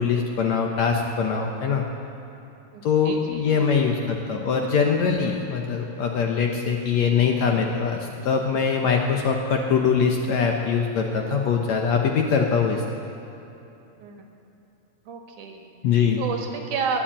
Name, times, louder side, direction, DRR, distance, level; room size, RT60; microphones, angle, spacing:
voice 1, 0.0-1.8 2.8-12.8 15.8-16.2, left 6 dB, 70° left, 2 dB, 1.9 m, -22 dB
voice 2, 2.7-3.8 14.0-14.3 15.1-15.7 16.2-17.0, right 5 dB, 65° right, 2 dB, 2.9 m, -31 dB
22.0 x 7.4 x 8.8 m, 2.9 s
omnidirectional pair, 4.0 m